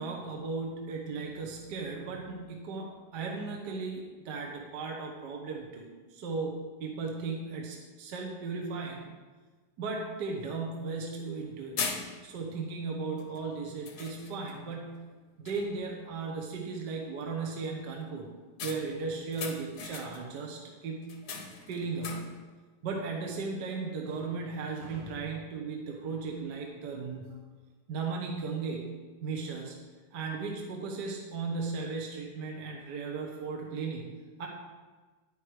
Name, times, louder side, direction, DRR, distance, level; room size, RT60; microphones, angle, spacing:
voice 1, 0.0-9.1 9.8-11.8 12.2-15.0 15.4-18.3 18.6-21.1 21.7-22.3 22.8-27.4 27.9-28.9 29.2-29.7 30.1-34.1 34.4-34.5, right 4 dB, 55° right, 0 dB, 1.6 m, -36 dB
sound 1, 9.9-10.0 10.4-10.5 11.2-11.4 11.8-12.5 13.2-13.4 13.9-14.6 15.0-15.2 15.5-15.9 18.6-20.4 21.0-22.5, left 5 dB, 55° left, 1.3 m, -39 dB
10.0 x 9.5 x 3.2 m, 1.4 s
omnidirectional pair, 2.4 m